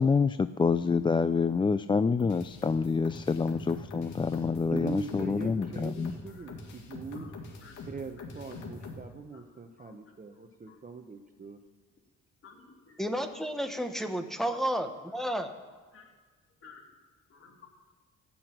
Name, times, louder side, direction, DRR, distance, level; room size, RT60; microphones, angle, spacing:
voice 1, 0.0-6.1, left 5 dB, 15° left, 12 dB, 0.3 m, -27 dB
sound 1, 2.2-9.0, left 3 dB, 80° left, 2.3 m, -44 dB
voice 2, 4.7-7.3 7.9-11.6, right 4 dB, 25° right, 6 dB, 1.0 m, -41 dB
voice 3, 6.3-6.6 7.1-7.3 7.6-7.8 9.3-9.4 9.8-9.9 10.7-10.8 12.4-13.0 15.9-16.0 16.6-16.8 17.3-17.7, left 5 dB, 45° left, -1 dB, 3.1 m, -54 dB
voice 4, 13.0-15.5, equal, ahead, 5 dB, 1.2 m, -31 dB
15.0 x 6.2 x 9.0 m, 1.4 s
cardioid pair, 90°, 30 cm